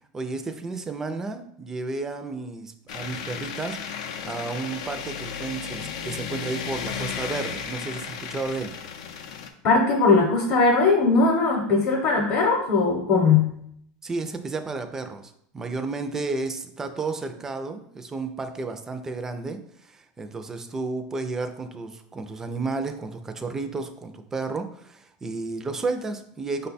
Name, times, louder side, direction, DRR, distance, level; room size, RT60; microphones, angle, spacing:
voice 1, 0.1-3.8 4.2-8.7 14.0-26.7, right 3 dB, 15° right, 7 dB, 0.3 m, -32 dB
sound 1, 2.9-9.5, left 7 dB, 90° left, 0.5 m, -34 dB
voice 2, 9.6-13.6, left 4 dB, 40° left, 0 dB, 0.8 m, -20 dB
5.1 x 2.2 x 4.1 m, 0.70 s
supercardioid pair, 150°, 3 cm